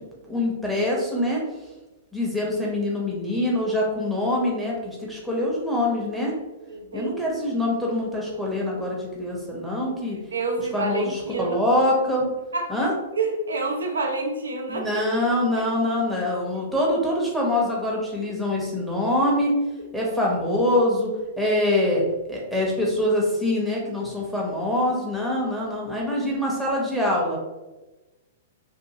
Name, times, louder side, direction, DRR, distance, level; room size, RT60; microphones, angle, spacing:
voice 1, 0.3-1.4 2.1-6.4 6.9-10.2 10.7-12.3 12.7-12.9 14.7-19.6 19.9-27.4, left 1 dB, ahead, -4 dB, 0.8 m, -24 dB
voice 2, 6.7-7.1 10.3-11.5 12.5-12.7 13.2-14.9 16.3-16.4, right 3 dB, 85° right, 2 dB, 0.4 m, -28 dB
2.7 x 2.5 x 2.7 m, 1.1 s
hypercardioid pair, 115°, 0 cm